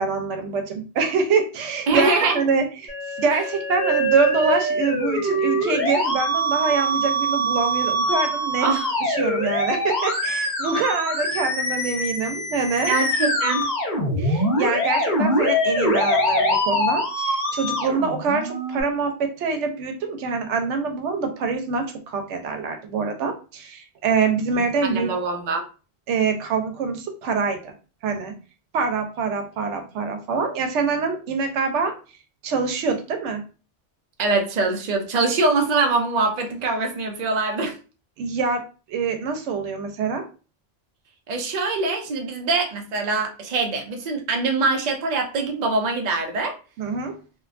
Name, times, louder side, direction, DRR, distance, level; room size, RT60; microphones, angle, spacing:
voice 1, 0.0-8.7 9.1-12.9 14.2-25.1 26.1-27.7 28.0-28.3 28.7-31.9 32.4-33.4 38.2-38.6 38.9-40.2 46.8-47.2, right 5 dB, 90° right, 5 dB, 0.9 m, -25 dB
voice 2, 1.9-2.4 8.6-8.9 12.9-13.7 24.5-24.6 24.9-25.6 34.2-37.7 41.3-46.6, right 3 dB, 50° right, 2 dB, 0.6 m, -23 dB
Musical instrument, 2.9-18.8, equal, 45° left, 0.9 m, -24 dB
2.6 x 2.2 x 2.4 m, 0.35 s
omnidirectional pair, 1.2 m